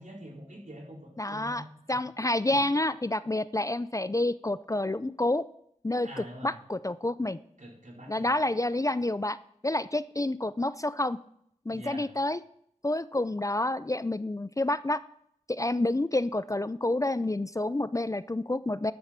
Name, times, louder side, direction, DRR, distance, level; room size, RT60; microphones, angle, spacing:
voice 1, 0.0-1.7 2.5-2.6 6.0-6.6 7.6-8.3 11.7-12.1, right 1 dB, 70° right, -4 dB, 4.3 m, -45 dB
voice 2, 1.2-1.6 1.9-5.4 5.8-7.4 8.1-9.4 9.6-11.2 11.7-12.4 12.8-15.0 15.5-18.9, left 2 dB, 25° left, 15 dB, 0.4 m, -29 dB
12.5 x 7.6 x 5.8 m, 0.71 s
wide cardioid pair, 50°, 13 cm